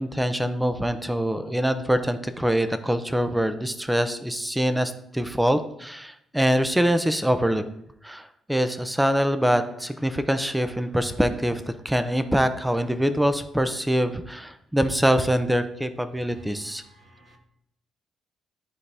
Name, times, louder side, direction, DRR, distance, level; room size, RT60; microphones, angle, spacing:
voice 1, 0.0-7.6 8.0-16.8, equal, 5° right, 10 dB, 0.6 m, -24 dB
voice 2, 16.8-17.4, right 2 dB, 50° right, 2 dB, 1.4 m, -51 dB
11.0 x 4.1 x 3.4 m, 0.77 s
cardioid pair, 90°, 0 cm